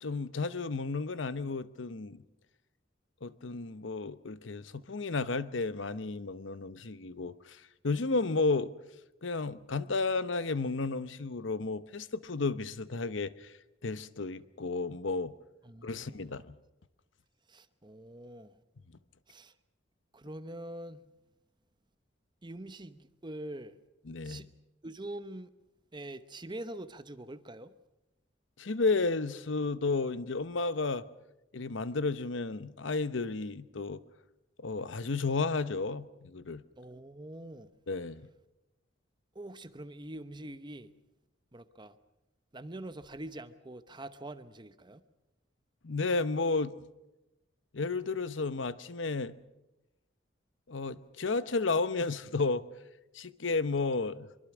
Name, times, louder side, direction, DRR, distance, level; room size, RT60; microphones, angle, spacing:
voice 1, 0.0-2.2 3.2-8.7 9.2-13.5 13.8-15.3 15.8-16.5 24.0-24.5 28.6-31.1 31.5-34.0 34.6-36.6 37.9-38.3 45.8-46.7 47.7-49.3 50.7-52.6 53.1-54.3, left 3 dB, 75° left, 0.9 m, -32 dB
voice 2, 15.6-16.4 17.5-18.5 19.3-19.5 20.1-21.0 22.4-23.7 24.2-24.5 24.8-25.5 25.9-27.7 36.8-37.7 39.3-40.9 41.5-41.9 42.5-45.0, right 1 dB, 25° right, 1.0 m, -44 dB
24.0 x 23.5 x 6.1 m
head